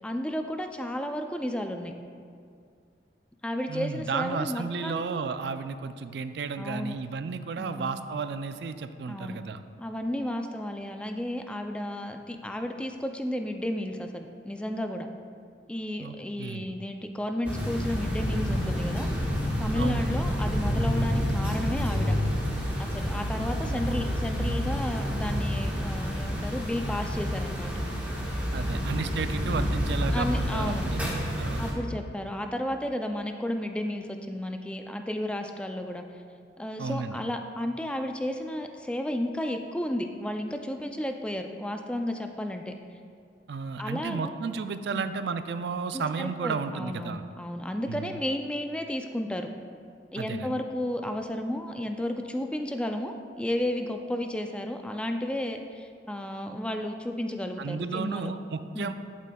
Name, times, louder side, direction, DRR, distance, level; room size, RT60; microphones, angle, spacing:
voice 1, 0.0-1.9 3.4-5.2 6.6-7.0 7.6-7.9 9.1-9.4 9.8-15.1 15.7-19.1 19.6-22.1 22.8-27.7 30.1-30.8 31.6-36.0 36.6-42.7 43.8-44.3 44.9-45.1 45.9-49.5 50.1-58.3 58.7-58.9, left 1 dB, 5° left, 5 dB, 0.3 m, -33 dB
voice 2, 3.7-9.6 16.0-16.7 19.8-20.2 23.6-24.5 28.5-31.6 36.8-37.2 43.5-47.2 47.9-48.2 50.2-50.5 57.6-58.9, right 5 dB, 65° right, 10 dB, 0.4 m, -33 dB
sound 1, 17.4-31.7, equal, 10° right, 1.3 m, -29 dB
11.5 x 7.4 x 2.3 m, 2.3 s
head